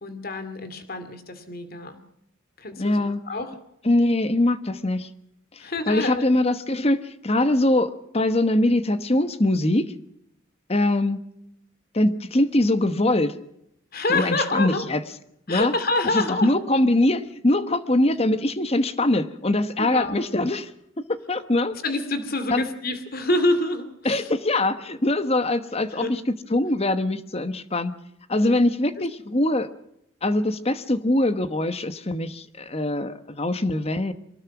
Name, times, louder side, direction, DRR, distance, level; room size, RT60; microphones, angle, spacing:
voice 1, 0.0-2.0 2.6-3.6 5.6-6.2 13.9-14.8 15.5-16.5 19.8-20.2 21.8-24.3 25.9-26.1 28.4-28.6, left 2 dB, 50° left, 10 dB, 2.4 m, -27 dB
voice 2, 2.8-3.2 3.8-5.1 5.9-9.9 10.7-11.2 11.9-13.4 14.1-15.0 15.5-15.7 16.1-20.7 21.0-21.8 22.5-22.6 24.0-26.2 26.5-27.9 28.3-29.7 30.2-34.1, left 1 dB, 30° left, 12 dB, 1.1 m, -22 dB
24.0 x 19.0 x 6.0 m, 0.78 s
head